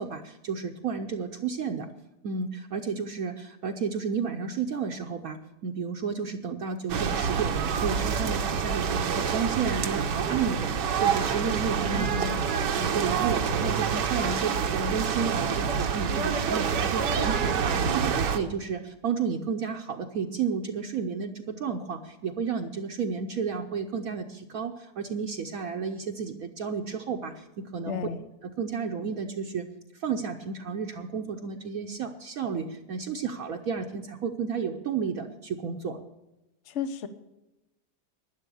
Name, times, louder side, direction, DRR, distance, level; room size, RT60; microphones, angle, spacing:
voice 1, 0.0-1.9 2.2-12.1 12.7-28.0 28.4-29.7 29.9-36.0, right 6 dB, 60° right, 2 dB, 1.2 m, -32 dB
sound 1, 6.9-18.4, right 6 dB, 80° right, 1.6 m, -27 dB
voice 2, 11.8-12.5 27.9-28.2 36.7-37.1, left 7 dB, 50° left, 10 dB, 1.1 m, -33 dB
12.0 x 10.0 x 7.0 m, 0.95 s
omnidirectional pair, 1.8 m